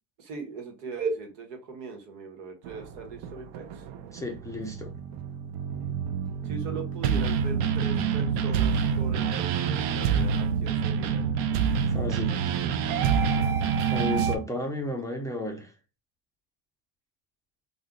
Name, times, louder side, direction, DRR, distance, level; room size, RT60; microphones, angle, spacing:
voice 1, 0.2-3.9 6.4-11.3, right 4 dB, 90° right, 1.1 m, -38 dB
sound 1, 2.6-14.4, right 7 dB, 65° right, 0.5 m, -27 dB
voice 2, 4.1-4.9 11.5-11.6 11.9-12.5 13.9-15.7, left 2 dB, 10° left, 0.3 m, -33 dB
2.5 x 2.1 x 3.6 m
supercardioid pair, 95°, 49 cm